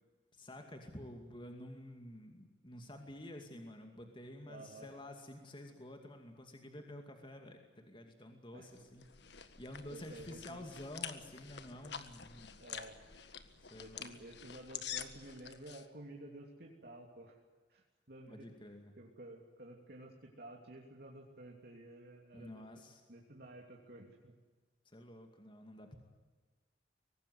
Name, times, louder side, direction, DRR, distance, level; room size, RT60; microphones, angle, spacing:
voice 1, 0.3-9.0 9.6-12.6 13.7-14.1 18.3-18.9 22.3-23.0 24.9-26.0, left 1 dB, 25° left, 4 dB, 2.4 m, -50 dB
voice 2, 4.5-4.9 8.5-8.7 9.9-10.6 12.6-13.0 13.8-17.4 17.7-18.5 19.0-22.6 23.1-24.3, right 1 dB, 60° right, 0 dB, 3.1 m, -52 dB
sound 1, 8.7-15.8, left 8 dB, 65° left, 1.7 m, -48 dB
24.0 x 18.5 x 9.6 m, 1.3 s
head